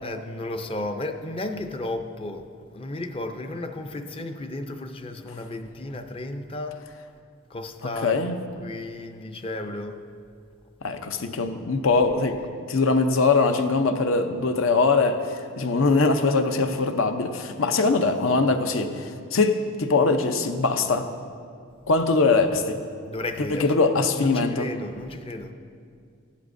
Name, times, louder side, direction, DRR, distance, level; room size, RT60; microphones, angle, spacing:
voice 1, 0.0-6.8 7.5-8.2 8.6-10.0 23.1-23.7 24.2-25.5, left 2 dB, 25° left, 7 dB, 0.5 m, -33 dB
voice 2, 8.0-8.3 10.8-12.4 12.7-21.1 21.9-22.8 23.5-24.7, left 3 dB, 70° left, 7 dB, 0.7 m, -22 dB
15.5 x 11.5 x 2.6 m, 2.3 s
head